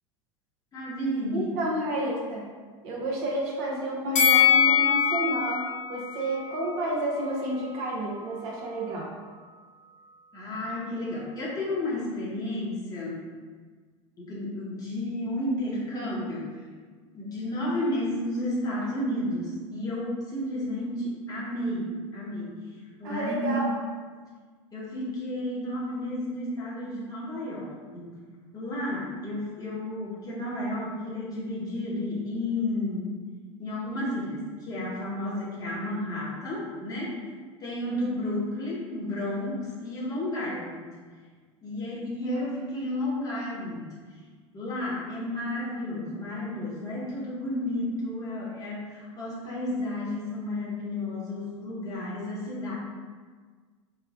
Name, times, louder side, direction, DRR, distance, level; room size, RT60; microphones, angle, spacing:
voice 1, 0.7-1.6 10.3-13.3 14.2-16.6 17.1-22.6 23.0-23.7 24.7-28.2 28.5-33.1 33.6-37.2 37.6-40.9 41.6-43.9 44.5-52.7, left 1 dB, 20° left, -6 dB, 0.9 m, -32 dB
voice 2, 1.3-2.5 2.8-9.1 23.0-23.7, right 1 dB, 45° right, -3 dB, 0.7 m, -30 dB
Bell, 4.2-7.3 7.7-7.8, left 8 dB, 45° left, 0.6 m, -23 dB
4.2 x 2.1 x 2.3 m, 1.5 s
figure-of-eight pair, 75°, 17 cm